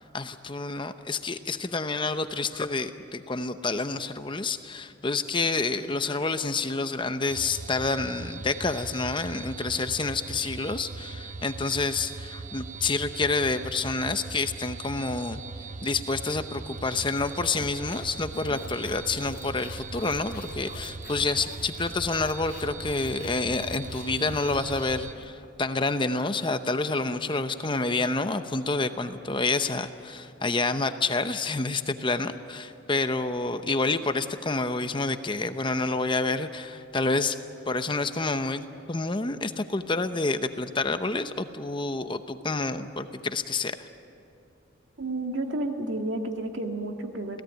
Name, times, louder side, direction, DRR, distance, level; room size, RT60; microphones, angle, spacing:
voice 1, 0.1-15.4 15.8-37.4 37.7-43.9, left 3 dB, 25° left, 9 dB, 0.8 m, -28 dB
sound 1, 7.3-25.2, right 4 dB, 40° right, 0.6 m, -40 dB
sound 2, 16.7-25.5, left 3 dB, 45° left, 1.1 m, -46 dB
voice 2, 45.0-47.4, right 2 dB, 70° right, 4 dB, 2.0 m, -31 dB
28.0 x 17.0 x 9.1 m, 2.6 s
head